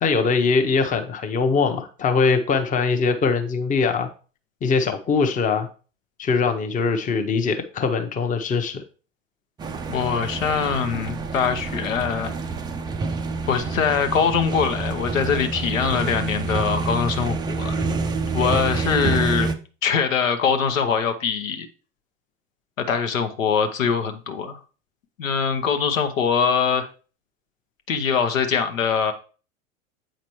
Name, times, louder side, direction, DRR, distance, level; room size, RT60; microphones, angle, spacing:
voice 1, 0.0-4.1 4.6-5.7 6.2-8.8, left 4 dB, 20° left, 6 dB, 0.8 m, -22 dB
sound 1, 9.6-19.5, right 4 dB, 10° right, 0.4 m, -27 dB
voice 2, 9.9-12.3 13.5-18.0 18.3-19.5 19.8-21.7 22.8-24.6 25.2-26.9 27.9-29.1, left 6 dB, 80° left, 7 dB, 0.9 m, -23 dB
7.8 x 5.1 x 3.0 m, 0.37 s
hypercardioid pair, 90°, 39 cm